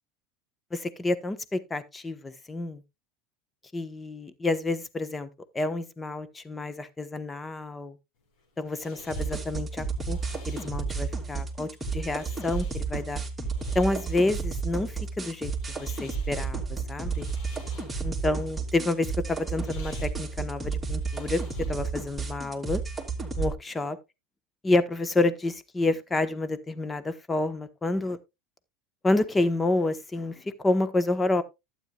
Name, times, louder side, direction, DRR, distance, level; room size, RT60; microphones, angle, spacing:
voice 1, 0.7-2.8 3.7-5.3 5.5-8.0 8.6-10.2 10.5-13.2 13.7-15.5 15.8-17.3 18.0-21.4 21.7-22.8 23.4-24.0 24.6-28.2 29.0-31.4, left 2 dB, 15° left, 1.2 m, -29 dB
sound 1, 8.2-22.1, left 4 dB, 70° left, 7.1 m, -53 dB
sound 2, 9.1-23.5, right 4 dB, 10° right, 2.9 m, -32 dB
12.0 x 9.3 x 2.4 m
hypercardioid pair, 95°, 0 cm